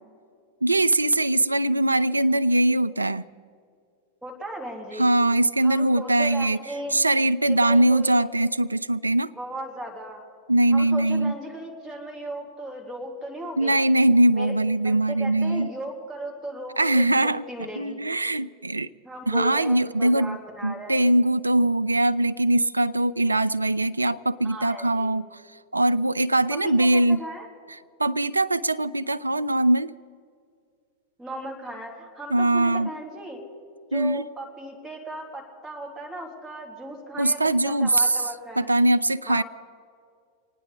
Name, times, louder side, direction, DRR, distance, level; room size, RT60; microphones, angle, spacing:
voice 1, 0.6-3.2 5.0-6.6 6.9-9.3 10.5-11.3 13.6-15.7 16.8-17.4 17.8-18.9 19.3-20.4 20.6-25.4 25.7-27.2 28.0-29.9 32.3-32.9 33.9-34.2 37.2-38.2 38.6-39.4, right 1 dB, 80° right, 0.3 m, -21 dB
voice 2, 4.2-5.1 5.6-7.0 7.6-8.2 9.3-10.2 10.7-13.8 14.3-14.5 15.1-18.0 19.0-21.0 24.4-25.1 26.5-27.5 31.2-33.4 33.9-38.7 39.3-39.4, right 1 dB, 5° right, 3.1 m, -37 dB
25.5 x 9.9 x 4.9 m
figure-of-eight pair, 90°, 0 cm